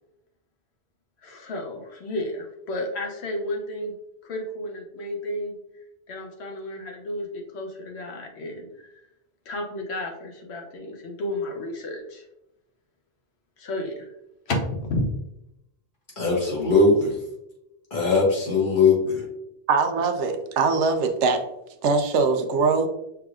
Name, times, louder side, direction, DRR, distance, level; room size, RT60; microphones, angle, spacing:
voice 1, 1.2-3.9 4.2-5.6 6.1-8.9 9.4-12.2 13.6-14.1 14.5-15.1, left 1 dB, 70° left, 2 dB, 1.2 m, -32 dB
voice 2, 16.2-17.2 17.9-19.2, left 3 dB, 45° left, -4 dB, 1.7 m, -20 dB
voice 3, 19.7-21.4 21.8-22.9, right 4 dB, 85° right, 6 dB, 0.9 m, -22 dB
5.8 x 3.5 x 2.4 m, 0.84 s
omnidirectional pair, 1.1 m